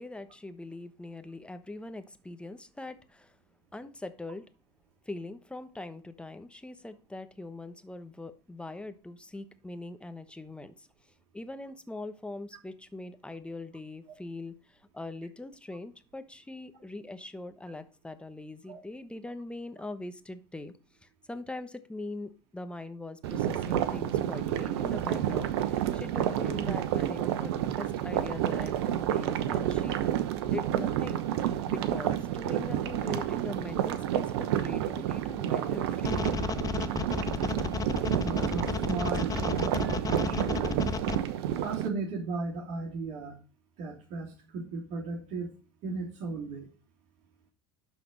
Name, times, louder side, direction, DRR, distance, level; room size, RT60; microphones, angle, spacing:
voice 1, 0.0-3.4 3.7-4.5 5.1-10.9 11.3-20.7 21.0-30.0 30.4-36.4, left 2 dB, 5° left, 10 dB, 1.1 m, -42 dB
sound 1, 23.2-41.9, right 11 dB, 75° right, 0.9 m, -30 dB
sound 2, 36.0-41.2, left 6 dB, 25° left, 0.8 m, -32 dB
voice 2, 38.2-39.8 40.2-40.8 41.6-43.4 43.8-45.5 45.8-46.7, right 3 dB, 60° right, -1 dB, 3.0 m, -36 dB
11.5 x 4.2 x 5.2 m, 0.36 s
hypercardioid pair, 85°, 14 cm